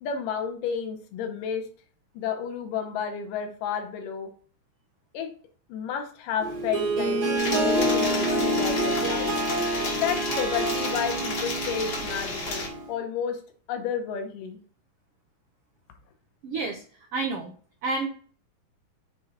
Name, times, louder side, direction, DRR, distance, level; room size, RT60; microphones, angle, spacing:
voice 1, 0.0-1.7 2.1-4.3 5.1-5.3 5.7-7.2 7.5-9.4 10.0-13.4 13.7-14.6, left 7 dB, 75° left, 5 dB, 2.5 m, -31 dB
Harp, 6.4-12.9, right 1 dB, 45° right, 1.3 m, -27 dB
sound 1, 7.4-12.7, left 3 dB, 50° left, 1.2 m, -33 dB
voice 2, 16.4-16.8 17.1-17.5 17.8-18.1, right 3 dB, 80° right, 2 dB, 1.3 m, -29 dB
7.4 x 3.8 x 4.1 m, 0.43 s
omnidirectional pair, 4.0 m